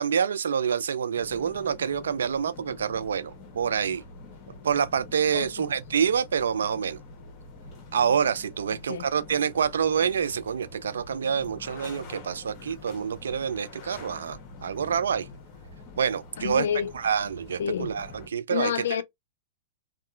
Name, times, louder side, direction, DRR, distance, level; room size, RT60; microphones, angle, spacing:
voice 1, 0.0-4.0 4.6-7.0 7.9-15.3 16.0-16.7 16.9-18.7, right 7 dB, 85° right, 0.3 m, -27 dB
sound 1, 1.2-18.3, left 3 dB, 35° left, 1.0 m, -46 dB
voice 2, 5.3-5.7 8.7-9.1 16.4-16.9 17.6-18.0 18.5-19.0, left 9 dB, 75° left, 0.4 m, -29 dB
2.8 x 2.3 x 2.3 m
hypercardioid pair, 120°, 0 cm